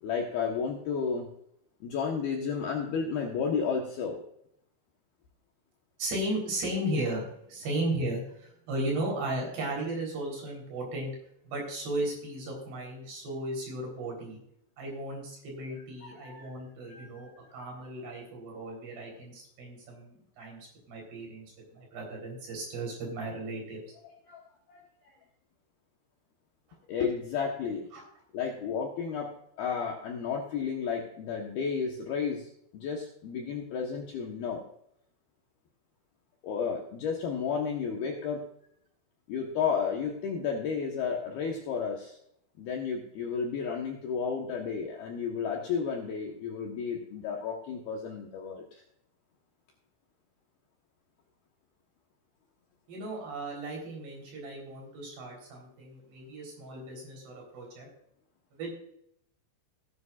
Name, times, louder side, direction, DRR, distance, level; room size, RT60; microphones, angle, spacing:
voice 1, 0.0-1.3 1.8-4.2 16.0-16.5 16.9-17.1 24.0-24.4 24.7-24.8 26.9-27.9 28.3-29.3 29.6-34.6 36.4-38.4 39.3-42.2 42.6-48.8, left 6 dB, 70° left, 0 dB, 2.5 m, -32 dB
voice 2, 6.0-11.1 11.4-14.4 14.8-21.5 21.7-23.8 27.9-28.0 52.9-57.9 58.5-58.7, right 1 dB, 55° right, -2 dB, 5.6 m, -35 dB
16.5 x 9.8 x 2.5 m, 0.72 s
omnidirectional pair, 5.8 m